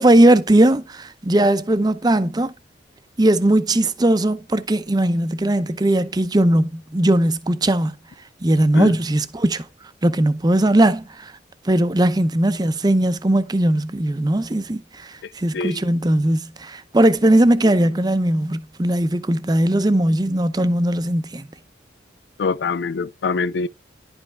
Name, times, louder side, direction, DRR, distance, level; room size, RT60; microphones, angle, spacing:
voice 1, 0.0-2.5 3.2-8.0 8.4-9.7 10.0-11.3 11.6-21.5, right 1 dB, 25° right, 0.6 m, -18 dB
voice 2, 22.4-23.7, left 4 dB, 70° left, 0.4 m, -24 dB
10.5 x 5.3 x 3.4 m
head